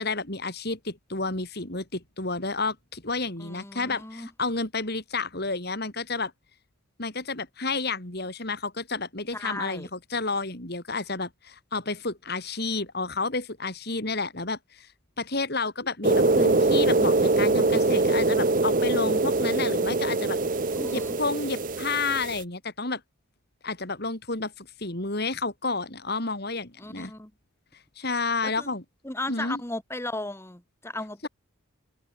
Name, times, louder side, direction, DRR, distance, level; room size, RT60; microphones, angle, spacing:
voice 1, 0.0-6.3 7.0-14.9 15.2-20.4 20.9-23.0 23.6-27.1 28.0-28.8 29.3-29.6 31.2-31.3, left 3 dB, 50° left, 3.6 m, -31 dB
voice 2, 3.4-4.3 9.3-9.9 20.7-21.2 26.8-27.3 28.4-28.7 29.0-31.3, left 2 dB, 10° left, 1.6 m, -36 dB
sound 1, 16.0-22.4, right 2 dB, 40° right, 0.9 m, -23 dB
head